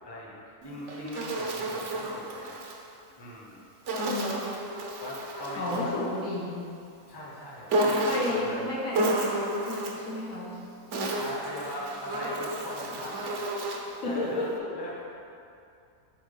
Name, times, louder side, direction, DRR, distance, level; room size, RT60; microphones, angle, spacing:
voice 1, 0.0-2.6 3.2-3.6 5.0-6.0 7.1-8.7 11.2-13.5 14.0-15.2, left 1 dB, 20° left, -3 dB, 1.0 m, -40 dB
Insect, 0.6-2.8 3.9-5.9 7.7-8.5 8.9-10.1 10.7-14.0, right 1 dB, 60° right, 1.1 m, -31 dB
voice 2, 4.0-4.5 5.6-6.7 8.0-10.5 14.0-14.7, left 1 dB, 70° left, -4 dB, 1.5 m, -32 dB
7.3 x 4.5 x 5.5 m, 2.5 s
omnidirectional pair, 1.5 m